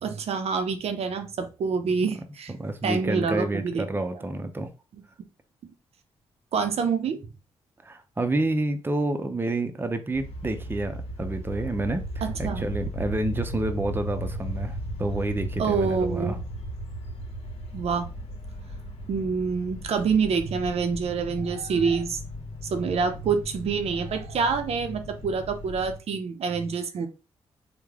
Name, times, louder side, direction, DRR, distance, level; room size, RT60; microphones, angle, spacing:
voice 1, 0.0-2.5 2.8-3.9 5.6-5.7 6.5-7.3 12.2-12.7 15.6-16.4 17.7-18.1 19.1-22.2 22.6-27.1, right 5 dB, 65° right, 0.5 m, -27 dB
voice 2, 2.5-4.7 7.8-16.4, right 2 dB, 20° right, 0.5 m, -29 dB
sound 1, 10.1-26.0, equal, 65° left, 0.9 m, -36 dB
3.2 x 2.1 x 3.5 m
cardioid pair, 65°, 11 cm